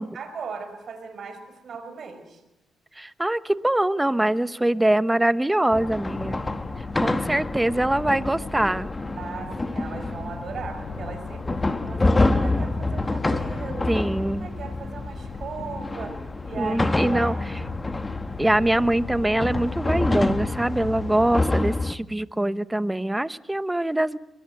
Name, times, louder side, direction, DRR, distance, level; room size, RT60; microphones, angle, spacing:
voice 1, 0.1-2.4 9.2-13.9 14.4-17.4, right 5 dB, 60° right, 8 dB, 5.3 m, -37 dB
voice 2, 3.0-6.4 7.0-8.9 13.9-14.5 16.6-17.3 18.4-24.2, right 1 dB, 10° right, 13 dB, 1.0 m, -23 dB
sound 1, 5.7-22.0, left 2 dB, 20° left, 1.4 m, -28 dB
sound 2, 6.1-21.4, left 4 dB, 65° left, 7.3 m, -37 dB
23.5 x 21.0 x 7.7 m, 1.0 s
cardioid pair, 75°, 0 cm